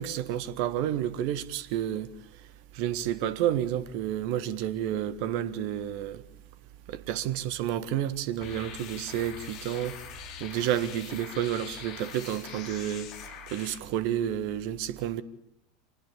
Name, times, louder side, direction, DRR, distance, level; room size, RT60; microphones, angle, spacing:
voice 1, 0.0-2.1 2.7-6.2 6.9-9.9 10.4-13.1 13.5-15.2, right 11 dB, 50° right, 1.5 m, -30 dB
sound 1, 8.4-13.8, left 7 dB, 45° left, 3.9 m, -43 dB
27.5 x 19.0 x 8.5 m
figure-of-eight pair, 80°, 0 cm